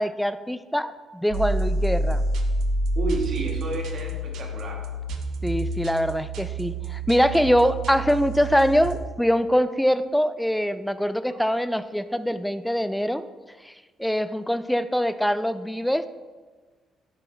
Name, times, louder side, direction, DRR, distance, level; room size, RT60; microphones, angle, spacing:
voice 1, 0.0-2.2 5.4-13.2 14.0-16.1, equal, 5° left, 12 dB, 0.3 m, -23 dB
sound 1, 1.3-9.0, right 1 dB, 80° right, 0.6 m, -28 dB
voice 2, 3.0-4.8 11.3-11.4, right 2 dB, 60° right, -1 dB, 1.6 m, -31 dB
9.9 x 3.6 x 3.3 m, 1.4 s
cardioid pair, 90°, 0 cm